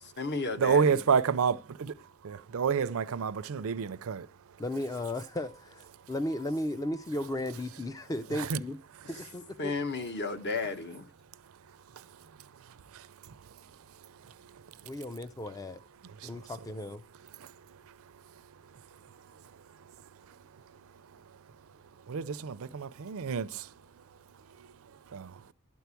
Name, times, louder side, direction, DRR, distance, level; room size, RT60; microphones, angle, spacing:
voice 1, 0.0-1.0 9.6-11.1, left 3 dB, 50° left, 1.1 m, -33 dB
voice 2, 0.6-4.6 6.0-6.1 8.3-8.6 8.9-9.1 11.3-15.0 16.0-16.5 17.3-25.5, right 6 dB, 65° right, 0.5 m, -33 dB
voice 3, 4.6-8.8 9.1-9.7 14.9-15.8 16.2-17.0, left 1 dB, 15° left, 0.4 m, -35 dB
12.0 x 4.6 x 8.3 m
head